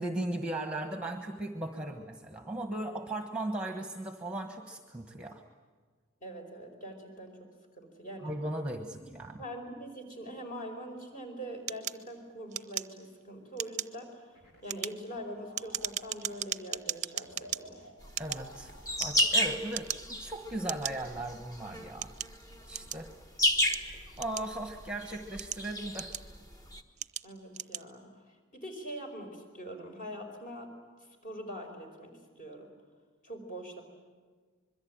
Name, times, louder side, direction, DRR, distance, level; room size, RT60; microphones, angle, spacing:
voice 1, 0.0-5.4 8.2-9.5 18.2-18.7 19.0-22.1 22.7-23.1 24.2-26.1, right 1 dB, 5° right, 5 dB, 1.2 m, -37 dB
voice 2, 6.2-7.5 7.8-8.3 9.0-9.1 9.4-14.2 14.6-17.8 27.2-28.1 28.5-30.7 31.2-32.7 33.2-33.8, equal, 40° left, 3 dB, 4.8 m, -43 dB
sound 1, 11.7-13.2 13.5-14.0 14.5-17.6 18.1-19.4 19.7-20.2 20.7-20.9 21.6-23.1 23.6-24.8 25.2-26.4 27.0-27.3 27.5-27.9, right 11 dB, 35° right, 0.7 m, -37 dB
sound 2, 14.3-14.7 15.0-19.3, left 1 dB, 80° left, 4.6 m, -53 dB
sound 3, 18.0-26.8, left 1 dB, 15° left, 1.3 m, -33 dB
25.5 x 22.5 x 8.9 m, 1.5 s
head